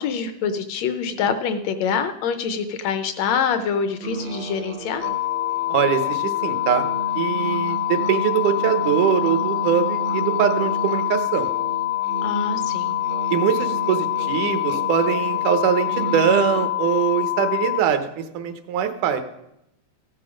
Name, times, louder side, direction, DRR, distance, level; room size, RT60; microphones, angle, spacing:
voice 1, 0.0-5.0 12.2-12.9, left 6 dB, 75° left, 9 dB, 1.7 m, -25 dB
sound 1, 4.0-16.7, right 3 dB, 65° right, 1.0 m, -33 dB
sound 2, 5.0-17.8, left 17 dB, 90° left, 1.3 m, -25 dB
voice 2, 5.7-6.9 7.2-11.5 13.3-19.2, right 8 dB, 80° right, 8 dB, 2.4 m, -22 dB
15.0 x 7.8 x 5.1 m, 0.83 s
omnidirectional pair, 3.5 m